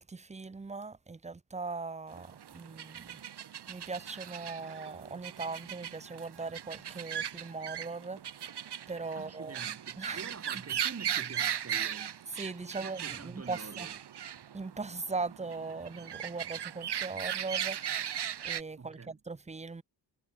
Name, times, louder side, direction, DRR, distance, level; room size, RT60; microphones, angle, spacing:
voice 1, 0.0-3.2 3.7-9.6 10.0-10.2 12.3-13.9 14.5-19.8, right 4 dB, 15° right, 0.8 m, -40 dB
sound 1, 2.1-18.6, right 9 dB, 70° right, 2.6 m, -38 dB
voice 2, 9.1-12.2 12.8-14.0 18.8-19.2, right 5 dB, 35° right, 5.4 m, -46 dB
wide cardioid pair, 165°, 42 cm